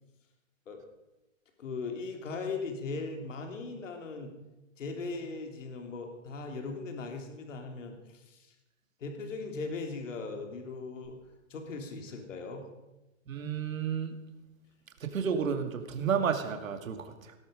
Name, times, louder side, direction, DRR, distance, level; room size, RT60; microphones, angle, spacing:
voice 1, 1.6-4.3 4.8-8.4 9.0-11.2 11.5-12.6, left 3 dB, 65° left, 4 dB, 3.1 m, -38 dB
voice 2, 13.3-14.2 15.0-17.3, right 6 dB, 80° right, 6 dB, 2.3 m, -31 dB
17.5 x 13.0 x 5.1 m, 0.99 s
hypercardioid pair, 175°, 40 cm